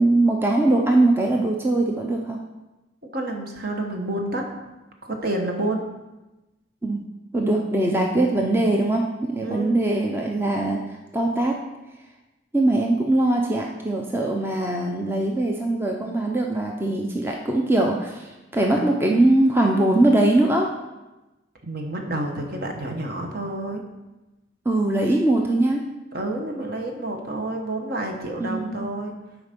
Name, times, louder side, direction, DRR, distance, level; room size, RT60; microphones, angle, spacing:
voice 1, 0.0-2.4 6.8-7.0 7.3-10.8 11.1-11.6 12.5-20.7 24.7-25.8 28.4-28.8, right 2 dB, 10° right, 0 dB, 0.5 m, -21 dB
voice 2, 3.1-4.5 5.0-5.9 9.4-9.7 21.6-23.8 26.1-29.1, right 1 dB, 55° right, 2 dB, 1.1 m, -29 dB
7.8 x 4.9 x 5.2 m, 1.0 s
head